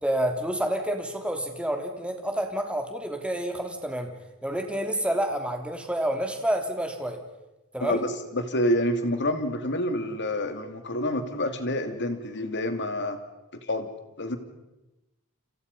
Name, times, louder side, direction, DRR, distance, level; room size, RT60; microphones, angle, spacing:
voice 1, 0.0-4.1 4.4-7.2 7.7-8.0, right 1 dB, 5° right, 4 dB, 3.1 m, -29 dB
voice 2, 7.8-13.2 13.6-13.9 14.2-14.4, left 1 dB, 55° left, 8 dB, 2.7 m, -28 dB
30.0 x 27.0 x 5.5 m, 0.98 s
head